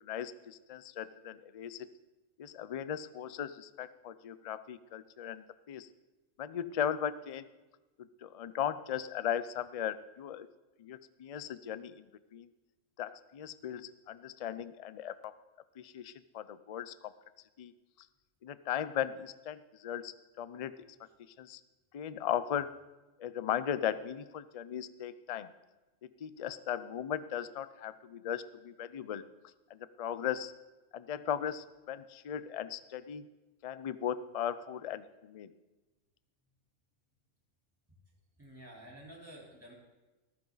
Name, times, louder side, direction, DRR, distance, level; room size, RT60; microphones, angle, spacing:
voice 1, 0.0-1.9 2.4-5.9 6.4-7.5 8.0-10.5 10.8-12.5 13.0-15.3 15.8-17.1 17.6-17.7 18.4-20.9 21.4-21.6 21.9-22.7 23.2-25.5 26.0-29.2 29.7-30.5 30.9-33.3 33.6-35.5, left 9 dB, 60° left, 15 dB, 0.3 m, -37 dB
voice 2, 38.4-39.7, right 1 dB, 10° right, -3 dB, 3.8 m, -50 dB
14.0 x 13.5 x 4.0 m, 1.1 s
omnidirectional pair, 1.3 m